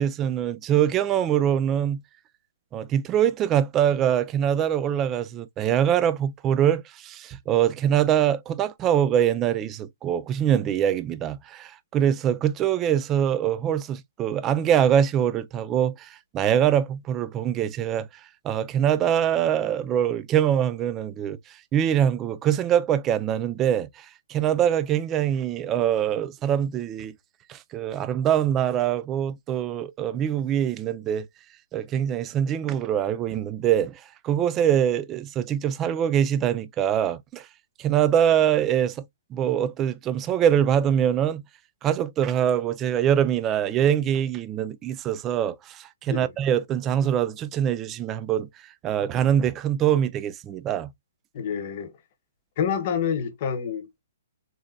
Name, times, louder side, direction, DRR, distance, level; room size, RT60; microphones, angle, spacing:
voice 1, 0.0-2.0 2.7-18.1 18.4-27.1 27.5-31.3 31.7-37.5 37.8-39.0 39.3-41.4 41.8-48.5 48.8-50.9, right 10 dB, 20° right, 0.3 m, -24 dB
voice 2, 51.3-51.9 52.6-54.0, left 7 dB, 45° left, 1.0 m, -28 dB
3.9 x 2.1 x 2.5 m
hypercardioid pair, 145°, 0 cm